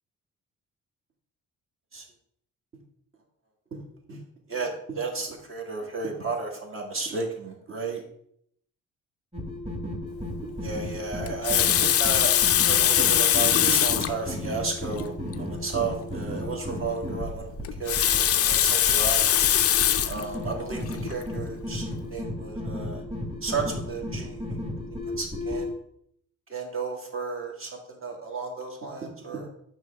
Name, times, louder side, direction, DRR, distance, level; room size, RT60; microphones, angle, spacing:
voice 1, 4.5-8.0 10.4-12.3 12.6-17.5 17.8-19.3 20.0-23.0 23.4-24.6 25.2-25.7 26.5-29.5, right 4 dB, 45° right, 0 dB, 1.7 m, -33 dB
sound 1, 9.3-25.7, left 1 dB, 20° right, 1.8 m, -34 dB
Water tap faucet, 11.3-14.2 15.0-15.1 15.3-15.4 17.6-20.2 20.9-21.1, left 11 dB, 50° left, 0.5 m, -21 dB
6.2 x 3.2 x 5.8 m, 0.70 s
cardioid pair, 90°, 30 cm